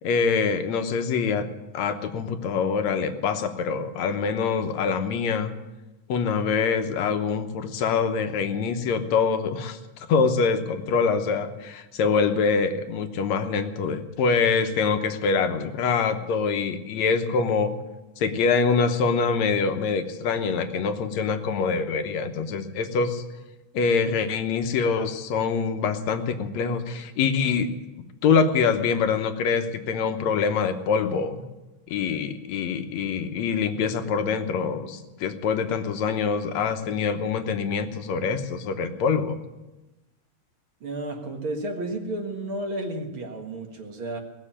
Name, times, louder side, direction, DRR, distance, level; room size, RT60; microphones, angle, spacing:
voice 1, 0.0-1.5 1.7-5.5 6.1-9.8 10.1-17.7 18.2-23.2 23.7-27.7 28.2-31.4 31.9-39.4, left 5 dB, 70° left, 7 dB, 2.1 m, -24 dB
voice 2, 40.8-44.2, right 1 dB, 45° right, 3 dB, 2.2 m, -32 dB
19.0 x 7.5 x 10.0 m, 1.1 s
omnidirectional pair, 3.5 m